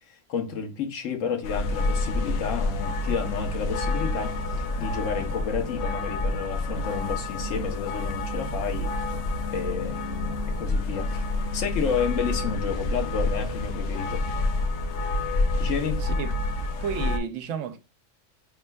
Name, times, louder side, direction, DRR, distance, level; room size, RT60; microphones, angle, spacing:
voice 1, 0.1-8.9 9.5-11.3 11.5-14.2 15.6-16.0, left 6 dB, 85° left, 1.2 m, -31 dB
sound 1, 1.4-17.2, left 2 dB, 70° left, 0.9 m, -28 dB
voice 2, 16.0-16.4 16.8-17.8, right 7 dB, 80° right, 0.9 m, -32 dB
4.3 x 3.6 x 2.2 m
omnidirectional pair, 1.3 m